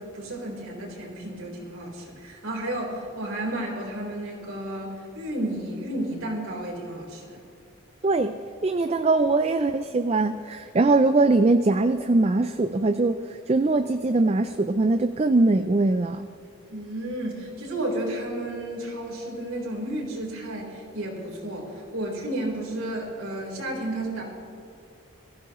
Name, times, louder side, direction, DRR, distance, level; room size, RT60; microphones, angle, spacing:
voice 1, 0.0-7.4 16.7-24.2, right 1 dB, 85° right, -2 dB, 4.0 m, -32 dB
voice 2, 8.0-16.3, right 2 dB, 30° right, 9 dB, 0.4 m, -22 dB
22.0 x 15.5 x 3.1 m, 2.7 s
head